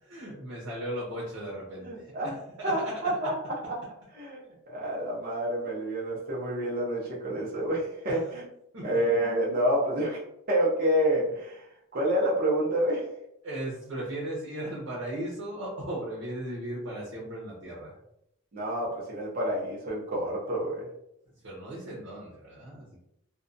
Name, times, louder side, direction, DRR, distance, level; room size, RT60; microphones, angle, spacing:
voice 1, 0.0-2.3 2.6-2.9 8.1-8.2 8.7-8.9 13.4-17.9 21.4-23.0, right 1 dB, 85° right, -5 dB, 0.8 m, -37 dB
voice 2, 1.8-2.4 2.6-3.3 3.6-3.8 4.1-8.4 8.8-10.2 10.5-11.6 11.9-13.1 18.5-20.9, right 1 dB, 45° right, -5 dB, 0.6 m, -28 dB
2.6 x 2.2 x 2.5 m, 0.79 s
head